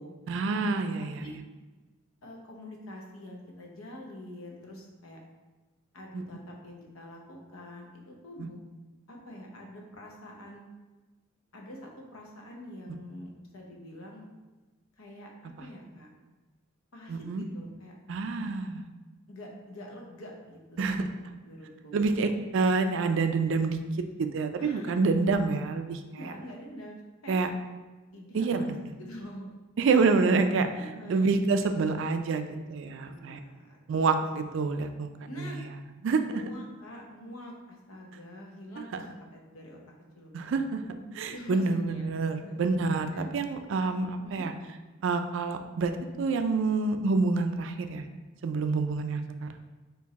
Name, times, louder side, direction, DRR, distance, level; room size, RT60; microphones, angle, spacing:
voice 1, 0.3-1.2 6.1-6.2 8.4-8.5 12.9-13.0 17.1-17.4 18.1-18.9 20.8-21.1 21.9-23.8 24.2-26.3 27.3-27.5 28.3-28.8 29.8-30.7 31.1-33.4 33.9-35.1 35.4-35.6 36.0-36.4 38.9-39.0 40.3-40.8 41.1-44.5 45.0-48.1 48.4-49.6, right 4 dB, 65° right, 8 dB, 0.4 m, -27 dB
voice 2, 2.2-5.2 5.9-8.6 9.1-10.6 11.5-14.3 15.0-15.3 15.6-16.1 16.9-17.9 19.3-21.0 21.4-22.1 24.6-24.9 26.1-27.0 27.2-27.4 28.1-29.5 30.7-31.3 33.0-33.8 34.4-34.6 35.3-35.6 36.3-39.0 39.3-39.8 40.2-40.6 41.2-42.1 42.4-42.7 43.1-43.3 44.2-44.5, equal, 85° left, 0 dB, 0.8 m, -45 dB
4.5 x 2.6 x 4.1 m, 1.2 s
head